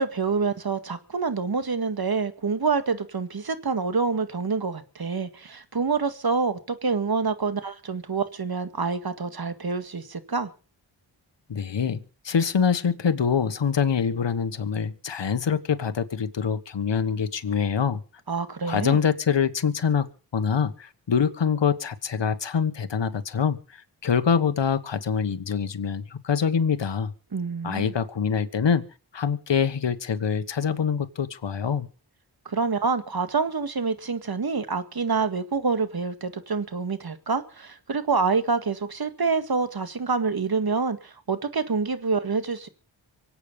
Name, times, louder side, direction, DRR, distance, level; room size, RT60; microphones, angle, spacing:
voice 1, 0.0-10.5 18.3-19.0 27.3-27.9 32.5-42.7, right 4 dB, 50° right, 10 dB, 2.0 m, -27 dB
voice 2, 11.5-18.0 18.7-27.1 27.6-28.8 29.1-31.9, left 6 dB, 60° left, 10 dB, 1.5 m, -25 dB
24.5 x 8.7 x 5.4 m, 0.37 s
cardioid pair, 50°, 48 cm